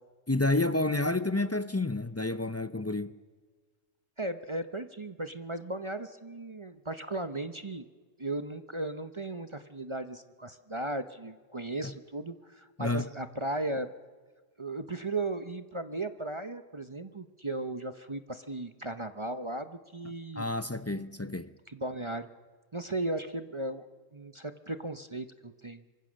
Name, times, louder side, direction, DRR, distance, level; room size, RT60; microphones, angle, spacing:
voice 1, 0.3-3.1 11.8-11.9 12.8-13.1 20.4-21.5, left 2 dB, 25° left, 0.3 m, -29 dB
voice 2, 4.2-7.8 8.2-13.9 14.6-20.5 21.7-22.3 22.7-23.9 24.1-25.8, right 2 dB, 25° right, 0.7 m, -36 dB
26.0 x 24.0 x 6.4 m
omnidirectional pair, 1.3 m